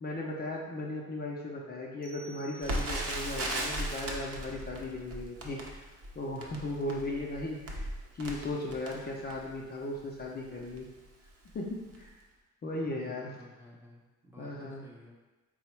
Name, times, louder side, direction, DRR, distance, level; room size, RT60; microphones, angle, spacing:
voice 1, 0.0-5.8 6.2-7.9 8.1-10.9 11.5-12.1 12.6-13.4 14.4-14.9, left 2 dB, 35° left, -2 dB, 0.5 m, -37 dB
sound 1, 2.0-3.5, right 2 dB, 55° left, 0.9 m, -53 dB
Crackle, 2.6-9.6 10.2-10.3 10.6-10.8 11.4-11.7 11.9-12.0, right 1 dB, 50° right, 0.7 m, -37 dB
voice 2, 12.9-15.1, left 1 dB, 10° right, -3 dB, 0.7 m, -54 dB
3.8 x 2.0 x 4.4 m, 1.2 s
cardioid pair, 90°, 30 cm